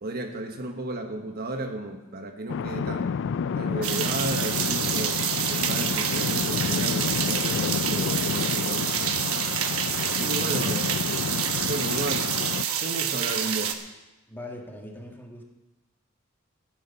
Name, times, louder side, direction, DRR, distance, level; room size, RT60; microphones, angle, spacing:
voice 1, 0.0-3.1 3.6-5.2 5.5-9.4 10.1-11.0 11.6-12.3 12.8-13.8, right 2 dB, 45° right, 5 dB, 1.2 m, -34 dB
sound 1, 2.5-12.6, left 6 dB, 60° left, 0.4 m, -30 dB
sound 2, 3.8-13.7, right 8 dB, 70° right, 1.1 m, -27 dB
voice 2, 10.2-10.8 14.3-15.4, left 1 dB, 10° left, 1 dB, 1.7 m, -40 dB
15.5 x 9.4 x 5.7 m, 1.0 s
head